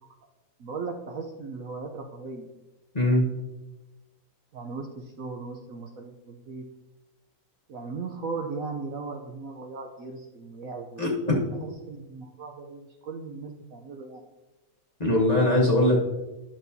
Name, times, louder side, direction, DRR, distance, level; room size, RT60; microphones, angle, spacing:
voice 1, 0.6-2.5 4.5-6.6 7.7-14.2, right 4 dB, 65° right, 3 dB, 1.0 m, -37 dB
voice 2, 2.9-3.3 11.0-11.5 15.0-16.0, left 1 dB, 25° left, -3 dB, 1.1 m, -21 dB
11.5 x 6.2 x 2.7 m, 1.1 s
omnidirectional pair, 1.8 m